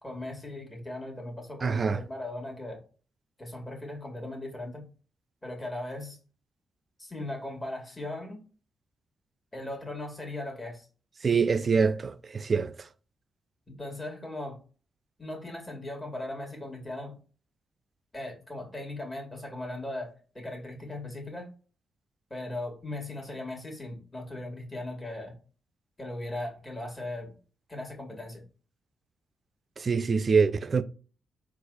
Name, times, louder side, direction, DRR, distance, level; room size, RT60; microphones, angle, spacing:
voice 1, 0.0-2.8 3.4-4.9 5.4-6.2 7.0-8.4 9.5-10.9 13.7-14.6 15.2-17.2 18.1-20.1 20.3-21.5 22.3-25.3 26.0-27.3 27.7-28.4, left 1 dB, 25° left, 2.0 m, -38 dB
voice 2, 1.6-2.0 11.2-12.7 29.8-30.8, right 5 dB, 45° right, 0.4 m, -25 dB
4.0 x 2.5 x 3.9 m
hypercardioid pair, 40°, 0 cm